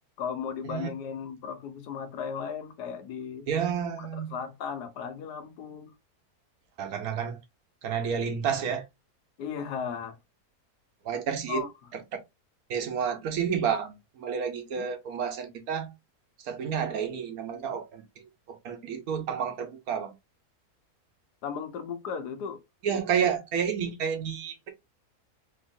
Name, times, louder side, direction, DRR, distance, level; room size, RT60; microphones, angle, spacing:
voice 1, 0.2-3.5 4.0-5.9 9.4-10.2 11.5-11.7 14.7-14.9 21.4-22.6, left 7 dB, 85° left, 1.3 m, -36 dB
voice 2, 3.5-4.3 6.8-7.4 7.8-8.8 11.0-11.6 12.7-15.9 16.4-18.0 18.5-20.1 22.8-24.7, right 7 dB, 70° right, 1.2 m, -30 dB
3.5 x 3.0 x 2.5 m
omnidirectional pair, 1.7 m